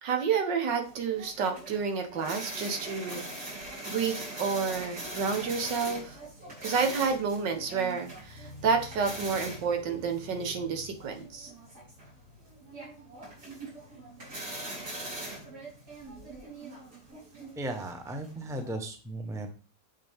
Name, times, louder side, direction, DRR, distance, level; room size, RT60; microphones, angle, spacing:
voice 1, 0.0-3.2 3.9-6.2 6.6-11.5, right 5 dB, 80° right, 5 dB, 1.9 m, -30 dB
sound 1, 0.8-18.7, right 1 dB, 60° right, 4.2 m, -42 dB
voice 2, 17.6-19.5, right 1 dB, ahead, 5 dB, 0.8 m, -36 dB
7.4 x 7.2 x 3.6 m, 0.36 s
omnidirectional pair, 1.9 m